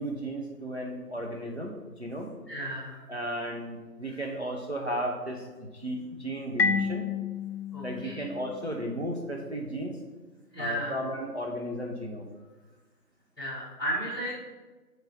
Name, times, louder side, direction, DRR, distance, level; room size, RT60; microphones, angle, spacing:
voice 1, 0.0-2.3 3.1-7.1 7.8-10.0 10.6-12.3, right 1 dB, 45° right, 0 dB, 0.6 m, -34 dB
voice 2, 2.5-3.0 7.7-8.2 10.5-10.9 13.4-14.5, equal, 15° left, -12 dB, 1.4 m, -34 dB
Marimba xylophone, 6.6-9.2, left 5 dB, 80° left, 0.7 m, -31 dB
4.9 x 3.9 x 5.8 m, 1.3 s
figure-of-eight pair, 170°, 48 cm